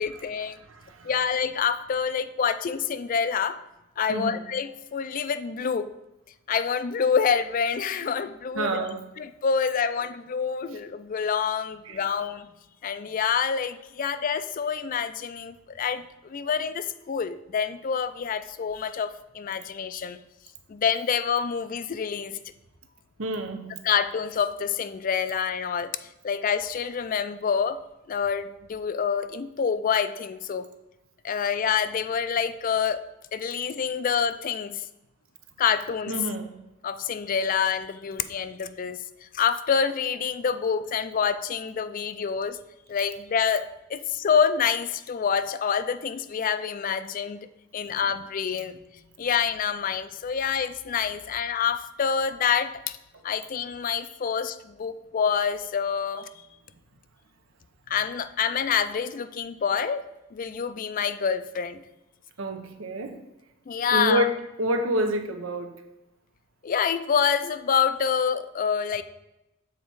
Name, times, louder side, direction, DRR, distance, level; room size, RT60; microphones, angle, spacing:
voice 1, 0.0-0.6 1.0-3.6 4.0-5.9 6.5-8.8 9.2-12.5 12.8-20.2 20.7-22.4 23.8-25.9 26.2-27.8 28.1-30.7 31.2-33.0 33.3-34.8 35.6-36.2 36.8-42.6 42.9-47.5 47.7-48.8 49.2-53.0 53.2-56.3 57.9-60.0 60.3-61.8 63.7-64.3 66.6-69.0, left 7 dB, 40° left, 12 dB, 0.4 m, -27 dB
voice 2, 0.7-1.1 4.1-4.4 8.5-9.0 11.9-12.0 23.2-23.7 36.1-36.5 62.4-63.2 63.9-65.8, right 1 dB, 90° right, 5 dB, 0.8 m, -28 dB
7.2 x 4.1 x 4.7 m, 0.95 s
head